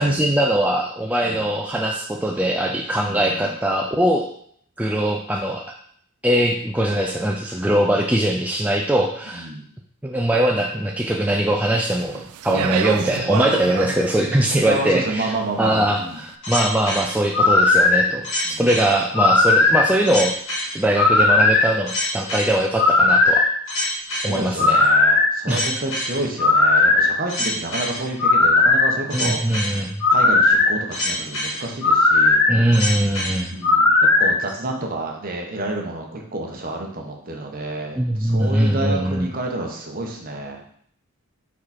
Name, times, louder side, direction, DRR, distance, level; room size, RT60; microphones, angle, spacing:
voice 1, 0.0-4.3 4.8-5.6 6.2-9.5 10.0-20.3 20.7-23.4 24.2-24.8 25.5-25.6 29.1-30.0 32.5-33.6 38.0-39.3, right 1 dB, 5° right, 0 dB, 0.3 m, -21 dB
voice 2, 3.0-3.5 9.3-9.6 14.6-16.2 18.4-18.7 24.1-29.4 30.1-32.4 33.5-33.9 34.2-40.6, right 2 dB, 40° right, 1 dB, 1.0 m, -29 dB
Speech, 11.8-16.1, right 8 dB, 85° right, 0.4 m, -29 dB
sound 1, 16.4-34.3, left 3 dB, 60° left, 2.3 m, -18 dB
4.9 x 4.7 x 4.2 m, 0.63 s
head